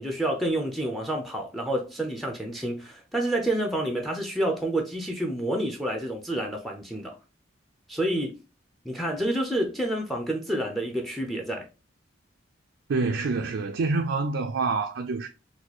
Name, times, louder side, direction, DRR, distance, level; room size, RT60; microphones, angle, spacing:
voice 1, 0.0-7.2 7.9-8.4 8.8-11.7, right 1 dB, ahead, 0.5 m, -28 dB
voice 2, 12.9-15.3, right 3 dB, 65° right, 0.4 m, -27 dB
4.1 x 2.3 x 2.9 m
head